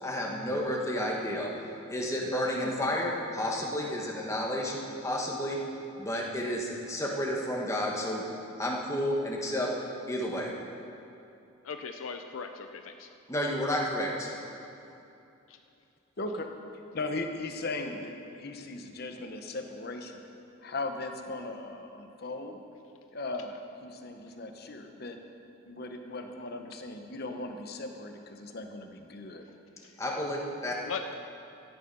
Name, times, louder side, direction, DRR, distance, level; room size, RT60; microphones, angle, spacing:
voice 1, 0.0-5.6 6.0-8.2 8.6-9.7 10.1-10.5 13.3-14.3 30.0-30.7, left 1 dB, 15° left, -2 dB, 1.4 m, -31 dB
voice 2, 11.6-13.1 15.5-15.6 29.8-29.9 30.9-31.1, left 5 dB, 80° left, 6 dB, 0.5 m, -38 dB
voice 3, 16.2-16.5 16.9-20.2 20.6-22.6 23.1-25.2 25.7-29.4, left 2 dB, 50° left, 5 dB, 1.0 m, -38 dB
13.5 x 9.2 x 5.5 m, 2.7 s
head